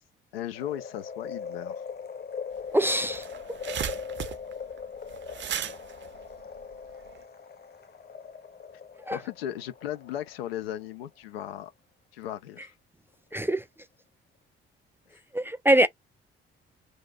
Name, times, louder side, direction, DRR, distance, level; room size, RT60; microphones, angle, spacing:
voice 1, 0.3-1.8 9.1-11.7 12.1-12.7 15.1-15.2, left 11 dB, 80° left, 0.6 m, -36 dB
sound 1, 0.5-10.8 11.2-11.3, left 6 dB, 35° left, 0.9 m, -40 dB
sound 2, 2.6-2.7 2.9-7.2, right 9 dB, 40° right, 0.7 m, -36 dB
voice 2, 2.7-3.2 9.1-9.2 13.3-13.6 15.3-15.9, right 1 dB, 10° right, 0.3 m, -23 dB
3.1 x 2.5 x 3.7 m
figure-of-eight pair, 45°, 30 cm